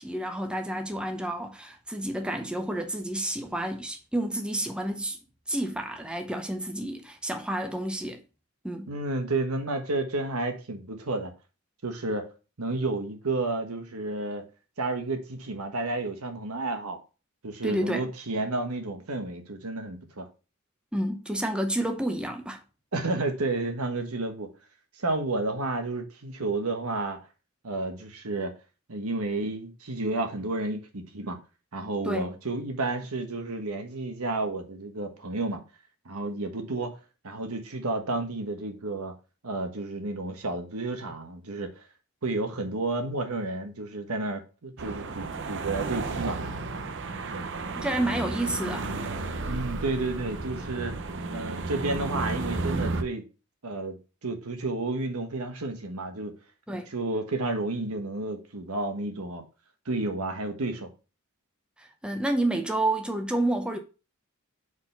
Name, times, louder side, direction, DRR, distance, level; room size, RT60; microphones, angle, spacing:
voice 1, 0.0-5.2 5.5-8.2 8.6-8.9 17.6-18.1 20.9-22.6 32.0-32.3 47.8-48.9 56.7-56.9 61.8-63.8, right 1 dB, 5° right, 0.6 m, -30 dB
voice 2, 8.9-11.3 11.8-12.3 12.6-14.4 14.8-17.0 17.4-20.3 22.9-24.5 25.0-27.2 27.6-28.6 28.9-31.4 31.7-35.6 36.0-37.0 37.2-39.1 39.4-41.8 42.2-46.4 47.3-47.5 49.5-51.0 51.3-53.3 53.6-54.0 54.2-56.4 56.9-59.4 59.8-60.9, right 2 dB, 85° right, 1.3 m, -31 dB
sound 1, 44.8-53.0, right 3 dB, 55° right, 0.7 m, -33 dB
4.8 x 4.1 x 5.5 m
head